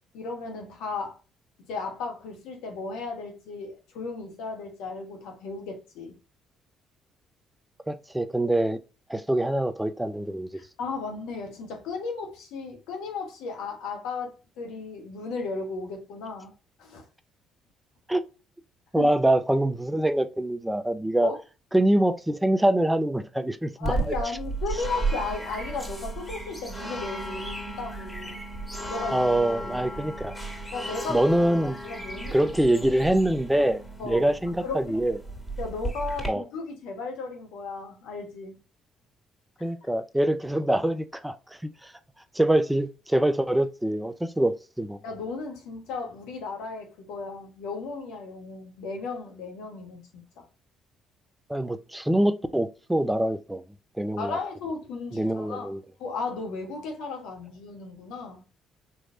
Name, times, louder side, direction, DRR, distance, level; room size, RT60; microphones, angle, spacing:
voice 1, 0.1-1.2 1.7-6.2 10.5-16.5 16.8-17.0 18.9-19.1 21.2-21.4 23.8-28.4 28.9-29.3 29.6-29.8 30.7-31.3 31.8-32.4 34.0-34.3 34.6-35.0 35.6-38.5 39.6-39.8 45.0-50.5 54.2-55.7 56.0-58.4, left 4 dB, 75° left, 1.3 m, -35 dB
voice 2, 7.9-8.8 9.1-10.5 18.1-18.2 18.9-21.3 21.7-23.9 29.1-30.4 31.1-31.8 32.3-35.2 36.3-36.4 39.6-41.4 41.8-41.9 42.3-45.0 51.5-53.6 54.0-54.4 55.1-55.8, right 1 dB, 5° right, 0.6 m, -24 dB
sound 1, 23.8-36.3, right 2 dB, 15° left, 2.1 m, -34 dB
4.6 x 3.2 x 2.7 m
hypercardioid pair, 55°, 0 cm